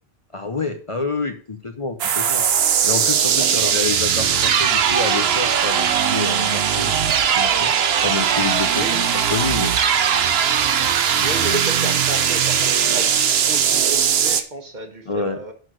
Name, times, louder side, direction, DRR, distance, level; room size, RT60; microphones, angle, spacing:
voice 1, 0.3-2.4 2.8-9.7 15.1-15.4, left 3 dB, 35° left, 6 dB, 0.8 m, -28 dB
sound 1, 2.0-14.4, right 8 dB, 75° right, 1.0 m, -19 dB
voice 2, 3.3-3.8 8.7-9.0 11.2-13.1 13.5-15.5, right 2 dB, 45° right, 6 dB, 1.4 m, -31 dB
10.5 x 4.4 x 6.2 m, 0.42 s
omnidirectional pair, 1.1 m